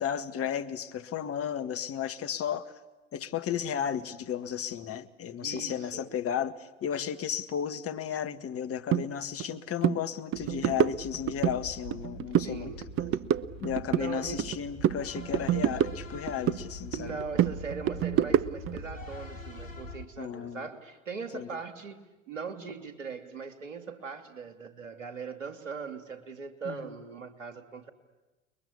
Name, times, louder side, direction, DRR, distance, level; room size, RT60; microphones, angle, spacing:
voice 1, 0.0-2.8 3.1-12.7 13.6-17.1 20.2-20.7 21.3-21.5 26.7-27.0, left 9 dB, 35° left, 10 dB, 1.7 m, -34 dB
voice 2, 5.4-6.1 12.4-12.8 13.9-14.5 16.9-27.9, right 5 dB, 80° right, 8 dB, 2.8 m, -40 dB
sound 1, 8.9-9.0 9.4-9.6 9.8-10.0 10.3-11.6 11.9-12.5 12.8-14.6 14.8-16.6 16.9-18.8, right 11 dB, 35° right, 0.9 m, -27 dB
sound 2, 10.3-20.1, left 1 dB, 85° left, 2.4 m, -44 dB
30.0 x 22.0 x 8.5 m, 1.1 s
figure-of-eight pair, 75°, 38 cm